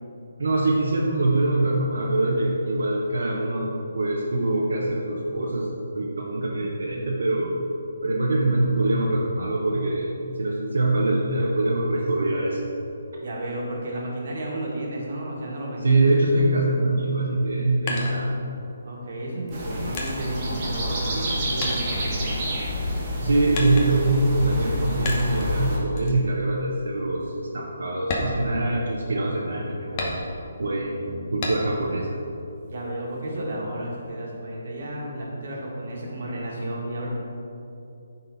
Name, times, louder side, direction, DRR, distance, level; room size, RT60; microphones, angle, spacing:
voice 1, 0.4-5.7 5.9-7.5 8.0-10.1 10.4-12.6 15.8-18.4 19.4-19.5 23.2-30.2 30.6-32.1, right 2 dB, 85° right, -3 dB, 0.9 m, -23 dB
voice 2, 13.2-15.9 18.8-22.6 32.7-37.1, right 1 dB, 55° right, -3 dB, 1.6 m, -32 dB
sound 1, 17.3-18.8 19.5-21.3 21.6-22.8 23.5-24.2 25.1-25.5 26.0-26.2 26.7-26.8 27.2-27.4 28.0-29.2 30.0-30.6 31.4-31.9 32.3-33.2, left 2 dB, 25° left, 0.9 m, -33 dB
sound 2, 19.5-25.8, left 1 dB, 25° right, 1.3 m, -28 dB
9.1 x 4.2 x 4.0 m, 2.8 s
hypercardioid pair, 170°, 0 cm